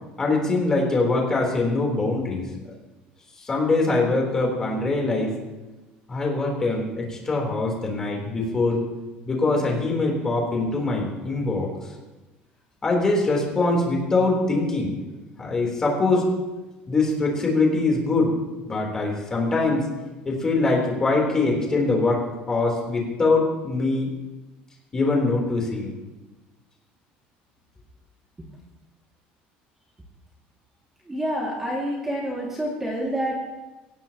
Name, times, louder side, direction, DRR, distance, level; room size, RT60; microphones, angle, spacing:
voice 1, 0.2-2.5 3.4-5.3 6.1-8.8 9.3-11.7 12.8-15.0 15.4-16.3 16.9-18.3 18.7-19.9 20.3-24.1 24.9-25.9, left 3 dB, 15° left, -1 dB, 3.6 m, -23 dB
voice 2, 31.1-33.4, equal, 10° right, -4 dB, 2.3 m, -27 dB
25.5 x 16.5 x 3.0 m, 1.1 s
cardioid pair, 175°, 3 cm